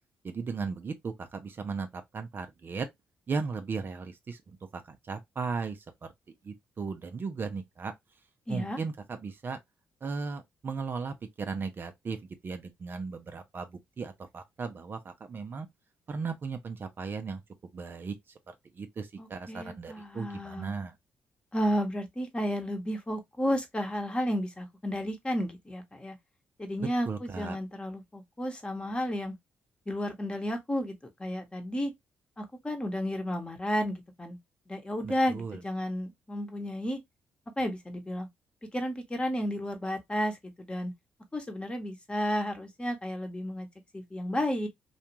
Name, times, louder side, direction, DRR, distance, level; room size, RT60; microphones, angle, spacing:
voice 1, 0.2-2.9 3.3-5.9 6.4-7.9 8.5-9.6 10.0-12.2 12.4-15.7 16.1-17.4 17.7-21.0 26.8-27.6 35.0-35.6, right 4 dB, 45° right, 0.6 m, -36 dB
voice 2, 8.5-8.8 19.2-20.7 21.5-26.1 26.6-29.3 29.9-31.9 32.4-34.4 34.7-37.0 37.6-38.3 38.7-40.9 41.3-43.7 43.9-44.7, equal, 20° left, 1.0 m, -32 dB
2.4 x 2.3 x 2.9 m
supercardioid pair, 55°, 5 cm